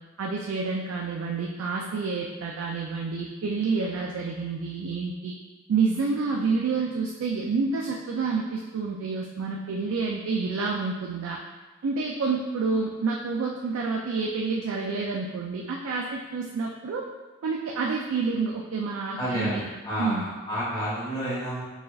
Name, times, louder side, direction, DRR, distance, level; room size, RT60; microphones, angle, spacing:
voice 1, 0.2-5.3 5.7-11.4 11.8-17.0 17.4-19.6 20.0-20.2, right 4 dB, 75° right, -1 dB, 0.3 m, -28 dB
voice 2, 19.2-21.6, equal, 20° left, -9 dB, 0.8 m, -30 dB
4.7 x 2.6 x 2.3 m, 1.3 s
head